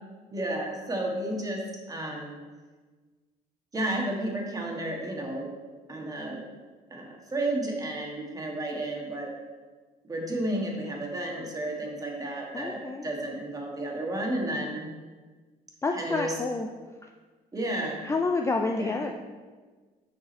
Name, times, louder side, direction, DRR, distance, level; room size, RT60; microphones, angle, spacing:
voice 1, 0.3-2.4 3.7-5.5 5.9-6.5 6.9-9.3 10.1-14.9 15.9-16.3 17.5-18.0 18.8-18.9, right 1 dB, 20° right, -1 dB, 1.6 m, -32 dB
voice 2, 12.5-13.1 15.8-16.7 18.0-19.1, left 3 dB, 15° left, 3 dB, 0.4 m, -28 dB
6.7 x 5.4 x 4.2 m, 1.4 s
cardioid pair, 110°, 17 cm